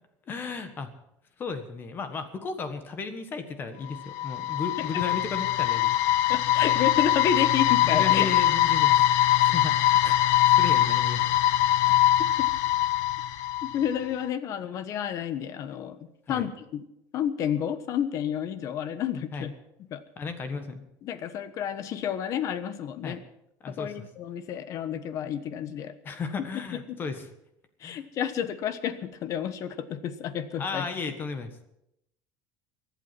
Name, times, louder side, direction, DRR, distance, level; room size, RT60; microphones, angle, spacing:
voice 1, 0.3-0.9 1.4-5.9 7.9-9.0 9.4-11.3 16.3-16.5 19.3-19.5 20.2-20.9 23.0-23.2 23.6-24.0 26.0-27.2 27.8-28.0 30.6-31.5, left 5 dB, 25° left, 9 dB, 1.4 m, -34 dB
sound 1, 3.9-14.0, left 13 dB, 70° left, 0.8 m, -23 dB
voice 2, 6.3-8.3 13.6-16.0 16.3-16.8 17.1-19.5 19.9-20.0 21.0-23.2 23.7-25.9 26.7-27.0 27.8-30.9, left 9 dB, 40° left, 12 dB, 1.1 m, -30 dB
24.0 x 8.4 x 6.0 m, 0.81 s
cardioid pair, 170°, 8 cm